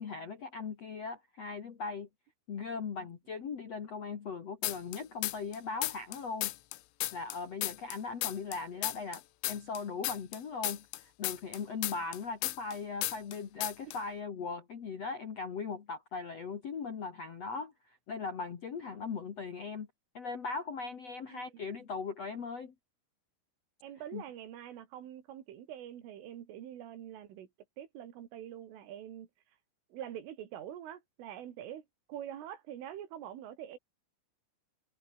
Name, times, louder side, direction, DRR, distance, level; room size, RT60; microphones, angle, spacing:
voice 1, 0.0-2.1 2.5-6.5 7.1-19.9 20.1-22.7 24.1-24.2, left 5 dB, 50° left, 1.9 m, -39 dB
sound 1, 4.6-5.6 5.8-8.6 8.8-12.8 13.0-13.4 13.6-14.0, left 18 dB, 80° left, 3.6 m, -34 dB
voice 2, 21.3-21.7 23.8-27.5 27.8-29.3 29.9-33.8, right 10 dB, 75° right, 4.9 m, -45 dB
omnidirectional pair, 5.9 m